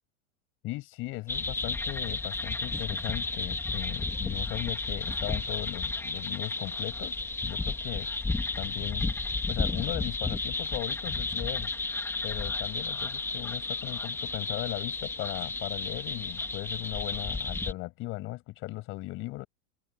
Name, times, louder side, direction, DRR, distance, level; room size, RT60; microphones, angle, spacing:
voice 1, 0.6-7.2 7.4-8.1 8.6-9.1 9.5-11.7 12.2-19.5, left 19 dB, 35° left, 7.2 m, -37 dB
sound 1, 1.3-17.7, left 3 dB, 5° left, 2.7 m, -32 dB
supercardioid pair, 170°, 38 cm